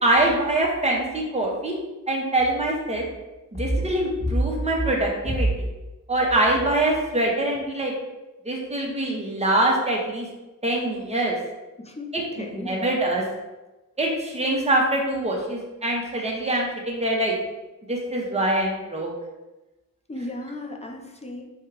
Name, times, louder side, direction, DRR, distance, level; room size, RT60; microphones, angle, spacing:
voice 1, 0.0-1.7 2.1-3.0 3.5-5.6 6.1-7.9 8.4-10.3 10.6-11.4 12.1-13.2 14.0-17.3 17.9-19.1, right 1 dB, 20° right, -2 dB, 0.9 m, -23 dB
voice 2, 11.8-12.8 20.1-21.4, left 2 dB, 20° left, 2 dB, 0.6 m, -36 dB
4.5 x 2.4 x 4.7 m, 1.1 s
wide cardioid pair, 125°, 34 cm